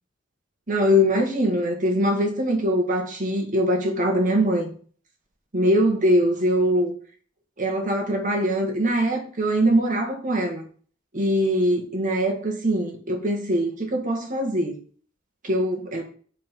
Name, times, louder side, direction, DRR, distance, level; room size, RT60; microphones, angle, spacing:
voice 1, 0.7-4.7 5.5-6.9 7.6-10.6 11.1-14.8 15.4-16.0, equal, 40° right, 1.8 m, -22 dB
6.9 x 4.6 x 5.3 m
head